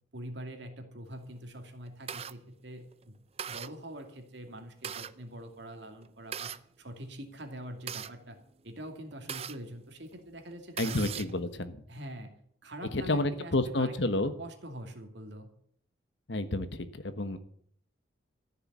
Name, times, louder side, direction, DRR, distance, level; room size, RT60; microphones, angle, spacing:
voice 1, 0.1-3.2 3.4-6.5 6.8-8.4 8.6-11.3 11.9-12.3 12.6-15.5, right 1 dB, 65° right, 4 dB, 2.5 m, -44 dB
sound 1, 1.4-2.3 2.9-3.0 3.4-3.7 4.5-5.1 6.0-6.6 7.4-9.6 10.1-10.2 10.5-11.4, right 8 dB, 30° right, 0.5 m, -39 dB
voice 2, 10.8-11.8 12.9-14.3 16.3-17.4, left 2 dB, 70° left, 11 dB, 1.2 m, -30 dB
14.5 x 6.7 x 9.6 m, 0.65 s
head